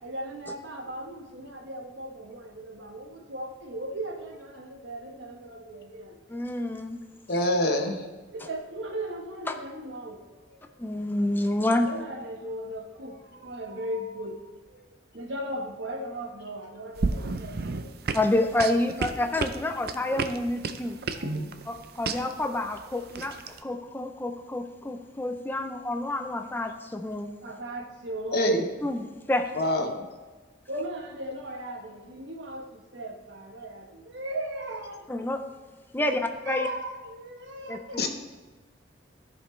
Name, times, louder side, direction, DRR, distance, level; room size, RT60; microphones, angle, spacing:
voice 1, 0.0-6.2 8.3-10.6 11.8-18.1 21.1-21.8 27.4-28.5 30.7-35.1 36.0-36.1 36.4-38.1, right 1 dB, 80° right, 2 dB, 1.2 m, -37 dB
voice 2, 6.3-7.0 10.8-11.9 18.1-21.0 22.0-27.3 28.8-29.5 35.1-35.4 35.9-36.2 36.5-36.7 37.7-38.0, left 1 dB, 10° left, 6 dB, 0.4 m, -28 dB
voice 3, 7.3-8.1 28.3-28.6 29.5-30.0 38.0-38.1, left 1 dB, 55° left, 4 dB, 1.0 m, -25 dB
sound 1, 16.9-23.6, right 4 dB, 55° right, 0.5 m, -32 dB
14.5 x 5.1 x 3.2 m, 1.3 s
head